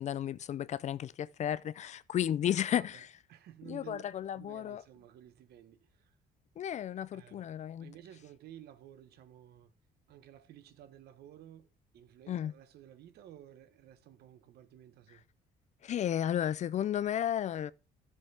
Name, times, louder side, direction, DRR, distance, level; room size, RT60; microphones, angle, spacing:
voice 1, 0.0-3.1 3.7-4.8 6.6-7.9 12.3-12.5 15.8-17.7, left 10 dB, 45° left, 0.4 m, -33 dB
voice 2, 2.7-4.0 4.3-6.2 7.1-7.4 7.8-9.7 10.1-15.2, right 11 dB, 70° right, 1.1 m, -54 dB
12.5 x 7.3 x 3.4 m
cardioid pair, 110°, 17 cm